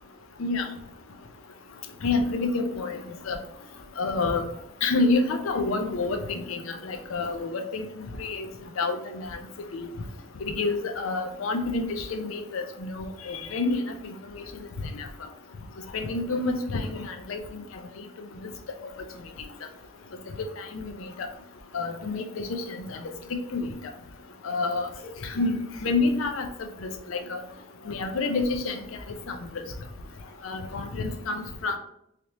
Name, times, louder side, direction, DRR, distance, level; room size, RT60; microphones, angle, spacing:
voice 1, 2.0-3.0 3.3-3.4 4.0-4.4 4.8-7.8 8.2-8.5 8.8-9.3 9.7-9.9 10.4-13.9 14.4-14.5 14.9-15.1 15.9-17.4 20.7-20.9 21.2-21.3 21.7-22.6 22.9-23.0 23.5-23.7 24.4-26.5 26.8-27.4 27.9-28.8 29.3-29.6 30.4-31.8, left 3 dB, 90° left, 6 dB, 0.5 m, -28 dB
3.3 x 2.8 x 2.9 m, 0.77 s
head